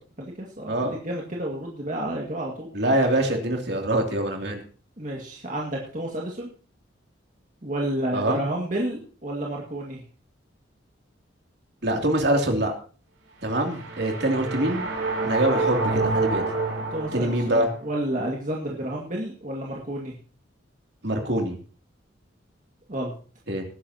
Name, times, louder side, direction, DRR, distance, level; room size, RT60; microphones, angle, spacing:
voice 1, 0.2-3.0 5.0-6.5 7.6-10.0 16.9-20.1 22.9-23.1, right 1 dB, 40° right, -2 dB, 2.1 m, -31 dB
voice 2, 2.7-4.6 8.1-8.4 11.8-12.7 13.4-14.9 15.2-16.4 17.1-17.7 21.0-21.6 23.5-23.6, right 1 dB, 55° right, 2 dB, 2.9 m, -24 dB
sound 1, 13.5-17.8, right 3 dB, 75° right, 4.4 m, -28 dB
19.5 x 10.5 x 2.9 m, 0.40 s
head